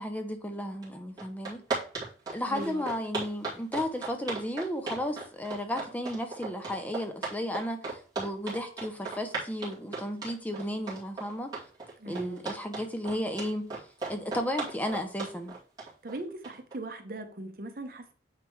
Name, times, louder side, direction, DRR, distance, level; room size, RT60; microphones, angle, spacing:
voice 1, 0.0-1.6 2.3-11.5 12.1-13.7 14.1-15.5, equal, 10° left, 0.6 m, -34 dB
sound 1, 0.8-0.9 1.2-16.7, right 3 dB, 25° right, 2.5 m, -36 dB
voice 2, 2.5-2.9 12.0-12.4 16.0-18.1, right 1 dB, 55° right, 0.9 m, -39 dB
9.3 x 3.4 x 3.2 m
head